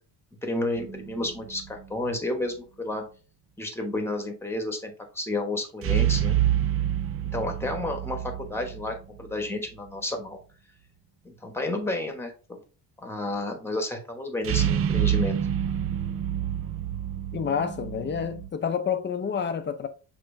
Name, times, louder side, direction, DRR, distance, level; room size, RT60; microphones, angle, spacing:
voice 1, 0.4-3.0 3.6-6.4 7.3-10.4 11.2-12.6 13.0-15.3, left 2 dB, 5° left, 1.1 m, -31 dB
sound 1, 0.8-1.7 5.8-9.4 14.4-18.5, right 10 dB, 35° right, 0.4 m, -27 dB
voice 2, 17.3-19.9, left 7 dB, 25° left, 0.6 m, -28 dB
6.7 x 3.0 x 2.6 m
cardioid pair, 120°, 42 cm